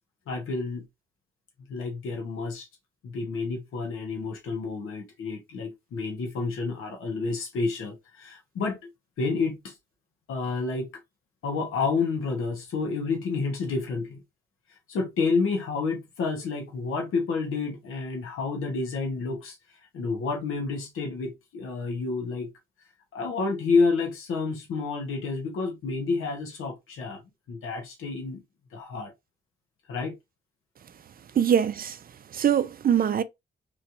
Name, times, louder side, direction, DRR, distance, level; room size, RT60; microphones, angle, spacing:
voice 1, 0.3-0.8 1.7-2.7 3.0-8.8 9.2-9.7 10.3-10.9 11.4-14.2 14.9-19.6 19.9-22.5 23.1-27.2 27.5-28.4 28.7-29.1 29.9-30.2, left 4 dB, 80° left, 1.0 m, -29 dB
voice 2, 31.4-32.0 32.3-33.2, right 9 dB, 45° right, 0.4 m, -22 dB
3.1 x 2.9 x 2.5 m
cardioid pair, 75°, 21 cm